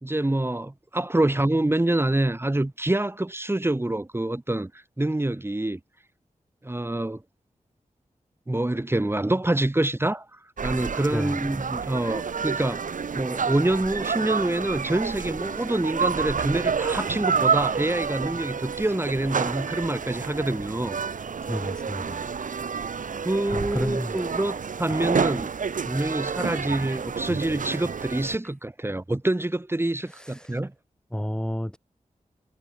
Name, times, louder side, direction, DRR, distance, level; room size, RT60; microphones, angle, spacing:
voice 1, 0.0-5.8 6.6-7.2 8.5-21.0 23.2-25.5 25.9-30.7, right 1 dB, 15° right, 3.4 m, -26 dB
sound 1, 10.6-28.4, right 6 dB, 70° right, 1.3 m, -29 dB
voice 2, 21.5-22.3 23.5-24.1 30.1-30.6 31.1-31.8, equal, 5° left, 2.4 m, -31 dB
wide cardioid pair, 115°, 14 cm